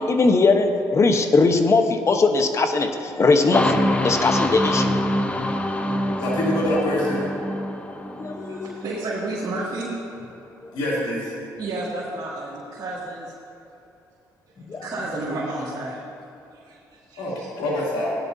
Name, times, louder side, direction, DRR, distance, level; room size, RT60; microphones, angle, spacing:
voice 1, 0.0-5.1 8.2-8.8 14.7-14.9, left 3 dB, 40° left, 6 dB, 1.0 m, -20 dB
sound 1, 3.5-9.2, left 1 dB, 15° left, 0.9 m, -25 dB
voice 2, 6.2-7.3 10.7-11.3 17.2-18.1, left 1 dB, 85° left, -5 dB, 2.9 m, -25 dB
voice 3, 8.5-10.3 11.6-13.3 14.7-16.0 16.5-17.5, right 2 dB, 60° right, -8 dB, 2.4 m, -31 dB
17.0 x 10.5 x 2.7 m, 2.8 s
cardioid pair, 75°, 8 cm